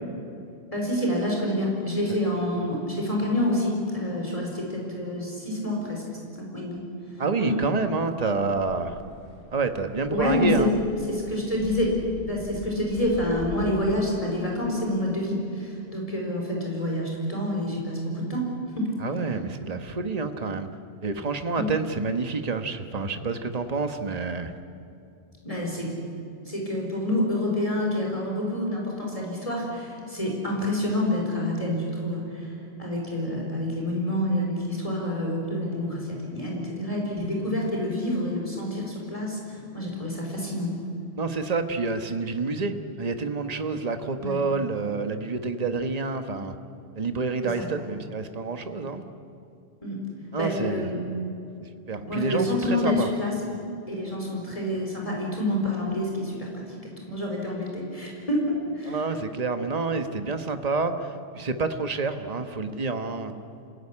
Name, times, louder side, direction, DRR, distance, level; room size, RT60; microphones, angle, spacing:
voice 1, 0.7-6.0 6.4-6.8 7.4-7.5 10.1-10.7 11.0-11.9 12.2-18.5 18.8-18.9 21.5-21.7 25.4-25.9 26.4-32.5 32.8-40.7 44.2-44.4 47.4-47.7 49.8-50.0 50.3-51.0 52.1-53.3 53.9-58.4 58.7-59.0, left 1 dB, 30° left, -2 dB, 4.7 m, -28 dB
voice 2, 7.2-9.0 9.5-10.7 19.0-20.7 21.0-24.5 41.2-46.6 47.0-49.0 50.3-50.9 51.9-53.1 58.8-63.4, right 4 dB, 35° right, 7 dB, 1.3 m, -28 dB
sound 1, 8.5-13.7, left 1 dB, 55° left, 6.1 m, -43 dB
27.5 x 16.5 x 9.9 m, 2.6 s
omnidirectional pair, 1.1 m